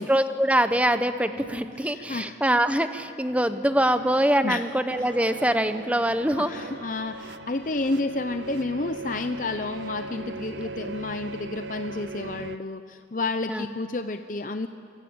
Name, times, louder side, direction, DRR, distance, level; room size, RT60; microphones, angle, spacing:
voice 1, 0.0-6.5 13.5-13.7, right 1 dB, 10° right, 10 dB, 0.9 m, -24 dB
sound 1, 0.7-2.7 3.3-5.6 5.9-8.2 8.4-10.5, equal, 65° right, 3.0 m, -50 dB
voice 2, 1.8-2.4 4.4-4.6 6.4-14.7, left 2 dB, 45° left, 8 dB, 0.7 m, -30 dB
sound 2, 4.9-12.6, right 3 dB, 80° right, 0.6 m, -39 dB
25.0 x 24.0 x 8.7 m, 2.5 s
head